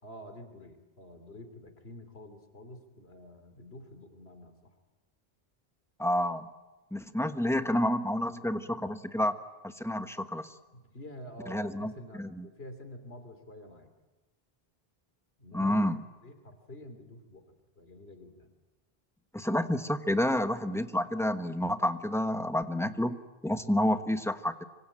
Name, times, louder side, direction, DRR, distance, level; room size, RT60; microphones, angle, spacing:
voice 1, 0.0-4.7 10.7-13.9 15.4-15.9 16.2-18.5, left 1 dB, 80° left, 8 dB, 3.4 m, -48 dB
voice 2, 6.0-6.5 6.9-9.4 9.6-10.5 11.5-11.9 12.2-12.5 15.5-16.0 19.3-23.2 23.4-24.6, left 1 dB, 5° left, 8 dB, 1.1 m, -29 dB
25.5 x 24.5 x 8.9 m, 1.2 s
omnidirectional pair, 1.0 m